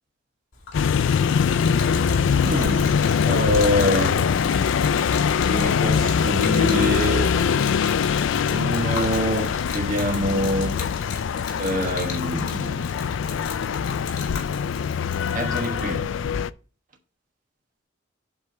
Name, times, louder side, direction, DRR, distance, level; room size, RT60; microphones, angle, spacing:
Gurgling / Liquid, 0.5-16.0, left 6 dB, 90° left, 2.2 m, -38 dB
sound 1, 0.7-16.5, left 6 dB, 65° left, 0.3 m, -23 dB
voice 1, 2.4-4.4 5.5-7.3 8.5-10.8 11.6-12.9 15.3-16.2, equal, 40° right, 1.3 m, -26 dB
8.0 x 3.5 x 6.5 m
head